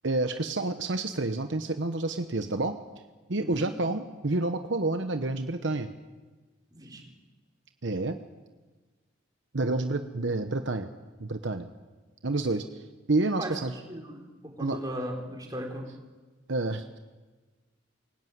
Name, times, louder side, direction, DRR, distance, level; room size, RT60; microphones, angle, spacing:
voice 1, 0.0-2.8 3.3-5.9 7.8-8.2 9.5-10.9 11.2-11.7 12.2-12.7 13.1-13.7 14.6-14.8 16.5-17.0, right 2 dB, 65° right, 8 dB, 1.0 m, -29 dB
voice 2, 3.4-3.7 6.7-7.0 13.4-13.6 13.8-15.9, right 1 dB, 20° right, 0 dB, 4.4 m, -37 dB
24.0 x 17.0 x 9.5 m, 1.3 s
head